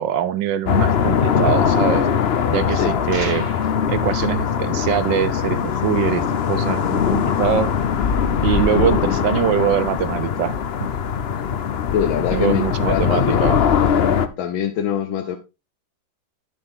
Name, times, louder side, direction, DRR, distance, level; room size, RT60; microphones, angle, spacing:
voice 1, 0.0-2.1 2.5-3.5 3.9-7.7 8.4-10.6 12.3-13.6, right 9 dB, 75° right, 1.3 m, -23 dB
sound 1, 0.7-14.3, left 7 dB, 70° left, 0.6 m, -21 dB
sound 2, 3.1-3.8, right 2 dB, 45° right, 3.2 m, -33 dB
voice 2, 11.9-13.7 14.4-15.4, left 9 dB, 90° left, 1.6 m, -24 dB
10.5 x 6.7 x 3.7 m
omnidirectional pair, 2.1 m